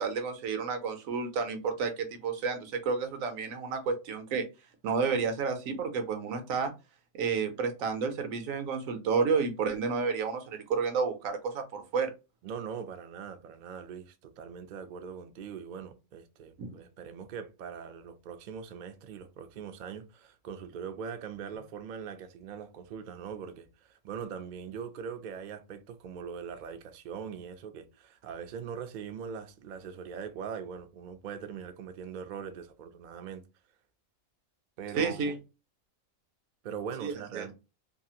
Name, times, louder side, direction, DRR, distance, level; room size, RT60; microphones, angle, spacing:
voice 1, 0.0-4.5 4.8-6.7 7.1-12.1 16.6-16.7 35.0-35.4 37.0-37.5, right 5 dB, 90° right, 1.1 m, -31 dB
voice 2, 12.4-33.4 34.8-35.3 36.6-37.5, right 7 dB, 75° right, 0.4 m, -41 dB
2.8 x 2.4 x 2.7 m
omnidirectional pair, 1.4 m